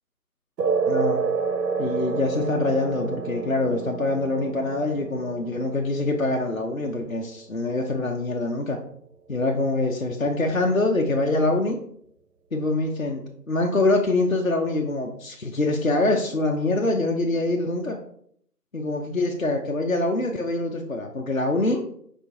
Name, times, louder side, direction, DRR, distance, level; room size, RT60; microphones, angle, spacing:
sound 1, 0.6-7.6, right 5 dB, 90° right, 0.6 m, -29 dB
voice 1, 0.9-1.2 1.8-8.8 9.3-11.8 12.5-13.2 13.5-18.0 18.7-21.8, left 2 dB, 60° left, 1 dB, 0.5 m, -24 dB
4.9 x 2.3 x 3.9 m, 0.67 s
figure-of-eight pair, 175°, 48 cm